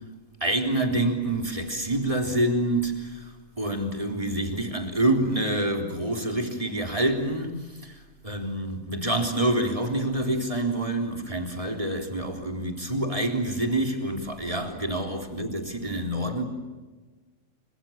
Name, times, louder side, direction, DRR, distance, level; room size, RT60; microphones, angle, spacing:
voice 1, 0.4-16.4, right 1 dB, 25° right, 3.8 m, -27 dB
29.5 x 26.0 x 7.3 m
omnidirectional pair, 1.4 m